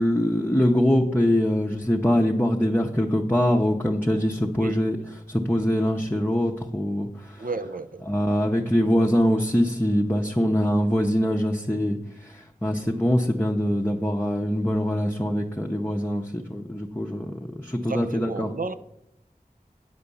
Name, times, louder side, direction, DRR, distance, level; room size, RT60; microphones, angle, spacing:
voice 1, 0.0-5.0 5.3-7.5 8.1-17.3 17.6-18.5, equal, 10° left, 0.8 m, -23 dB
voice 2, 7.4-8.1 17.9-18.7, right 3 dB, 60° right, 0.6 m, -32 dB
9.0 x 5.0 x 7.0 m
wide cardioid pair, 40°, 16 cm